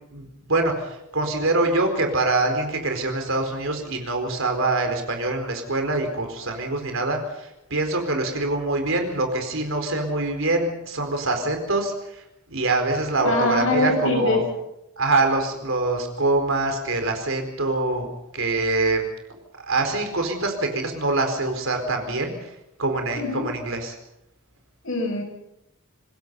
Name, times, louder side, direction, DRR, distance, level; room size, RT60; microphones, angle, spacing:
voice 1, 0.1-12.2 12.5-14.4 15.0-18.1 18.3-19.0 19.6-22.5 22.8-23.9, right 2 dB, 65° right, 5 dB, 4.5 m, -24 dB
voice 2, 13.2-14.4 23.1-23.4 24.8-25.2, left 2 dB, 65° left, 3 dB, 7.0 m, -23 dB
26.5 x 20.5 x 5.5 m, 0.86 s
head